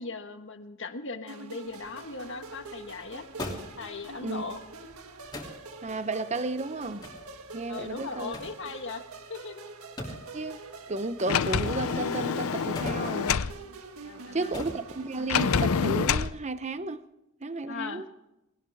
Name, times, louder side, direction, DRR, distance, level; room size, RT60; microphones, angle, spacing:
voice 1, 0.0-3.3 3.8-4.6 7.7-9.0 9.3-9.6 14.0-14.6 17.6-18.0, left 4 dB, 60° left, 1.5 m, -38 dB
sound 1, 1.3-16.0, right 3 dB, 85° right, 1.6 m, -45 dB
sound 2, 1.7-15.8, left 1 dB, 20° left, 2.9 m, -45 dB
voice 2, 5.8-7.0 7.5-8.3 10.3-10.6 10.9-13.4 14.3-17.0 17.4-18.0, right 2 dB, 30° right, 0.8 m, -33 dB
Sliding door, 11.3-13.5 15.3-16.3, left 6 dB, 80° left, 0.6 m, -27 dB
20.0 x 18.5 x 3.6 m
head